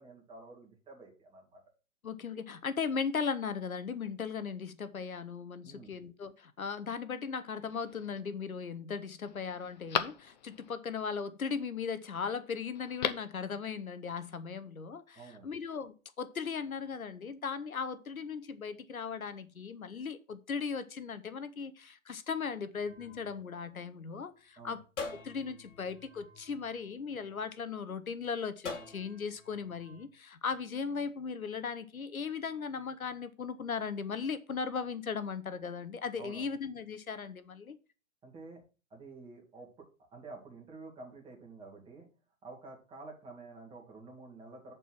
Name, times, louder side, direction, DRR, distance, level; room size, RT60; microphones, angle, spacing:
voice 1, 0.0-1.6 5.6-6.0 15.1-15.5 24.6-24.8 36.2-36.5 38.2-38.6 38.9-42.1 42.4-44.7, right 3 dB, 10° right, 2.1 m, -50 dB
voice 2, 2.0-24.8 25.2-37.8, left 6 dB, 80° left, 0.9 m, -37 dB
Telephone, 7.6-8.2 8.7-8.8 9.2-10.7 12.7-13.4 13.7-13.8, left 9 dB, 30° left, 0.6 m, -37 dB
sound 1, 22.9-24.3 25.0-27.5 28.6-30.0, left 4 dB, 60° left, 2.5 m, -46 dB
8.0 x 4.6 x 5.9 m
figure-of-eight pair, 125°, 42 cm